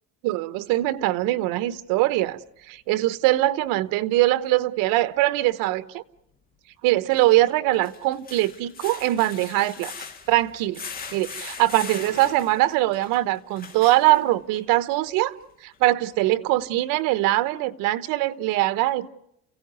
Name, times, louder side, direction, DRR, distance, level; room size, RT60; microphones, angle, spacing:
voice 1, 0.2-2.4 2.7-6.0 6.8-9.9 10.3-10.8 11.1-15.3 15.6-19.1, right 17 dB, 85° right, 1.1 m, -22 dB
sound 1, 4.4-4.5 7.0-14.6 15.2-15.3 15.7-15.8, left 5 dB, 30° left, 2.3 m, -40 dB
29.5 x 16.5 x 9.5 m
cardioid pair, 175°, 32 cm